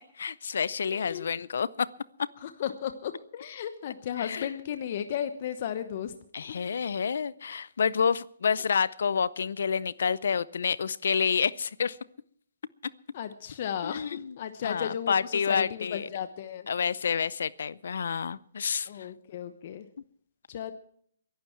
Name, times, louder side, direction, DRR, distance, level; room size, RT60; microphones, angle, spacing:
voice 1, 0.2-1.9 4.2-4.5 6.3-12.0 13.8-14.4 14.6-16.1 16.7-19.1, left 6 dB, 70° left, 20 dB, 0.6 m, -29 dB
voice 2, 0.9-1.3 2.4-6.1 6.4-6.6 13.1-16.7 18.9-19.9 20.5-20.7, left 9 dB, 50° left, 9 dB, 1.0 m, -35 dB
23.0 x 11.5 x 4.6 m, 0.64 s
hypercardioid pair, 140°, 0 cm